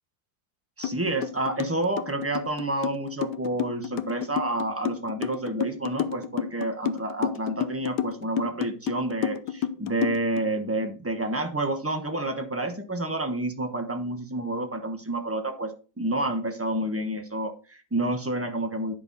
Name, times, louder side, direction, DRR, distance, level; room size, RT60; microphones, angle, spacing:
sound 1, 0.8-1.0 1.2-10.4, left 10 dB, 85° left, 1.2 m, -30 dB
voice 1, 0.8-18.9, right 2 dB, 10° right, 6 dB, 0.8 m, -29 dB
9.7 x 5.6 x 3.9 m, 0.35 s
omnidirectional pair, 1.8 m